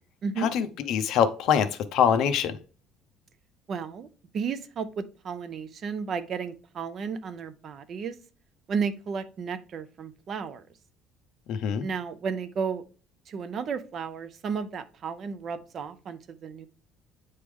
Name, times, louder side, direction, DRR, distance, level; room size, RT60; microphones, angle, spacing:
voice 1, 0.4-2.6 11.5-11.8, left 8 dB, 55° left, 11 dB, 0.6 m, -24 dB
voice 2, 3.7-4.1 4.3-8.2 8.7-10.6 11.8-12.8 13.3-16.7, right 6 dB, 35° right, 13 dB, 0.5 m, -33 dB
8.8 x 3.2 x 3.5 m, 0.38 s
cardioid pair, 170°, 0 cm